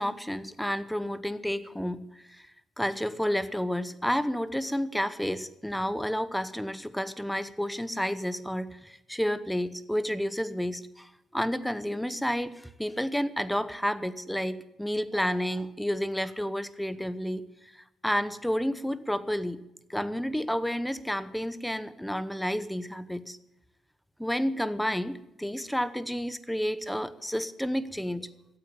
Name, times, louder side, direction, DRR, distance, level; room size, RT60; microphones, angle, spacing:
voice 1, 0.0-2.5 2.8-17.5 17.7-19.6 19.9-23.4 24.2-28.3, equal, 5° left, 14 dB, 0.9 m, -30 dB
14.0 x 8.4 x 9.1 m, 0.87 s
cardioid pair, 90°, 0 cm